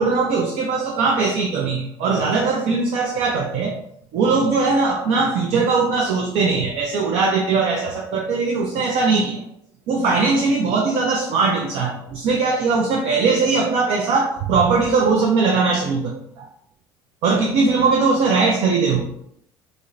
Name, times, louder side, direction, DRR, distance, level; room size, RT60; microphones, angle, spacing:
voice 1, 0.0-3.8 4.1-9.4 9.9-16.5 17.2-19.0, right 4 dB, 50° right, 0 dB, 0.4 m, -20 dB
2.7 x 2.0 x 2.5 m, 0.72 s
figure-of-eight pair, 60°, 13 cm